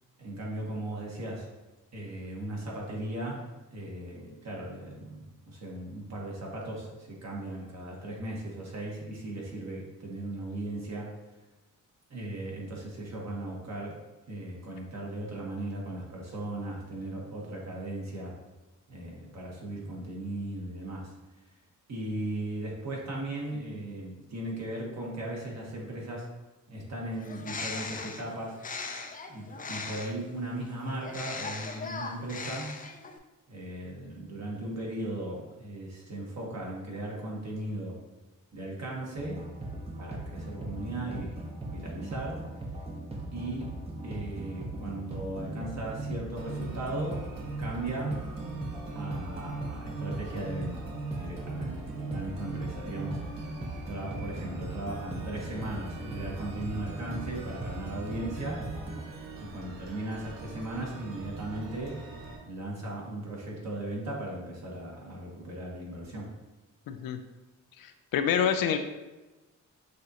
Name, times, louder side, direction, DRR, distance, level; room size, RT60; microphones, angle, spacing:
voice 1, 0.2-1.5 1.9-3.4 3.7-11.1 12.1-14.0 14.3-18.3 18.9-21.1 21.9-26.3 26.7-28.6 29.3-32.9 33.5-38.0 38.5-39.4 40.0-42.5 43.3-43.7 44.0-47.2 47.6-48.2 48.9-50.9 51.2-53.5 53.9-58.7 59.4-62.0 62.4-66.3, right 1 dB, 50° right, -3 dB, 1.4 m, -37 dB
Bird, 27.2-30.3 31.0-33.2, left 4 dB, 25° left, 0.4 m, -39 dB
sound 1, 39.2-59.1, right 2 dB, 20° right, 0.7 m, -38 dB
sound 2, 46.4-62.4, right 3 dB, 85° right, 0.8 m, -45 dB
voice 2, 66.9-67.2 67.8-68.8, left 8 dB, 85° left, 8 dB, 0.5 m, -27 dB
6.5 x 2.5 x 2.8 m, 1.1 s
cardioid pair, 90°, 33 cm